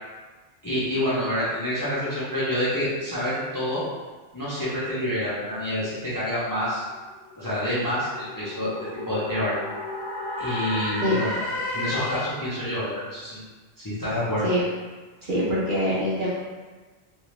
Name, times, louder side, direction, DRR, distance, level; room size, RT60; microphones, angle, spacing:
voice 1, 0.6-3.8 4.3-6.8 7.4-9.6 10.4-11.4 11.7-13.4 13.8-14.5, left 1 dB, 20° left, -11 dB, 0.7 m, -27 dB
sound 1, 6.5-12.5, left 1 dB, 90° left, 1.0 m, -33 dB
voice 2, 15.3-16.3, equal, 50° right, -8 dB, 0.8 m, -24 dB
2.6 x 2.4 x 3.2 m, 1.3 s
omnidirectional pair, 1.2 m